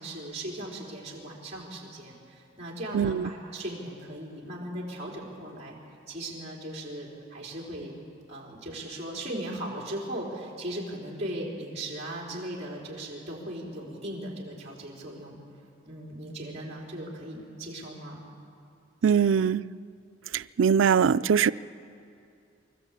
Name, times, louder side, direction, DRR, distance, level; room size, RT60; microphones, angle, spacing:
voice 1, 0.0-5.8 6.1-7.9 8.3-15.4 15.9-18.2, right 1 dB, 35° right, 4.0 m, -38 dB
voice 2, 2.9-3.3 19.0-19.6 20.3-21.5, right 7 dB, 85° right, 0.4 m, -22 dB
24.5 x 14.0 x 8.4 m
head